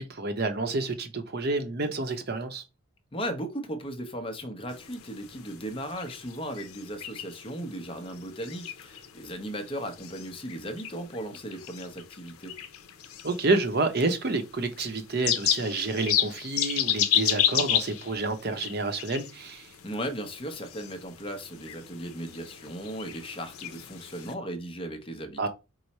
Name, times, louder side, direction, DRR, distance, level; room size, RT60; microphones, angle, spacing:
voice 1, 0.0-2.6 13.2-19.7 25.4-25.5, right 3 dB, 45° right, 0.7 m, -29 dB
voice 2, 3.1-12.5 19.8-25.5, equal, 25° left, 0.7 m, -36 dB
sound 1, 4.7-24.3, left 10 dB, 85° left, 0.6 m, -33 dB
4.7 x 2.0 x 4.1 m
head